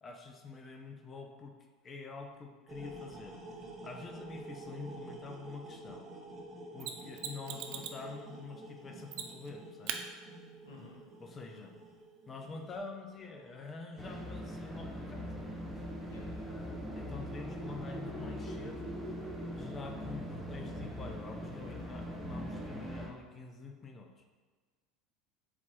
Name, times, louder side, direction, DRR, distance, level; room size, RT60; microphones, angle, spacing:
voice 1, 0.0-3.4 3.8-6.1 6.7-10.1 11.2-11.7 12.3-15.7 16.4-18.9 19.5-24.3, left 4 dB, 30° left, 4 dB, 0.6 m, -47 dB
sound 1, 2.7-13.6, right 2 dB, 20° right, 1.1 m, -49 dB
Mechanisms, 6.8-8.0 9.1-9.5 9.9-10.0 12.8-12.9, right 9 dB, 60° right, 0.4 m, -40 dB
voice 2, 10.6-11.1 11.5-11.8 16.1-16.6 21.6-21.9, left 3 dB, 75° left, -2 dB, 0.9 m, -55 dB
sound 2, 14.0-23.1, equal, 5° right, 0.8 m, -41 dB
4.1 x 3.0 x 4.3 m, 1.4 s
hypercardioid pair, 75°, 0 cm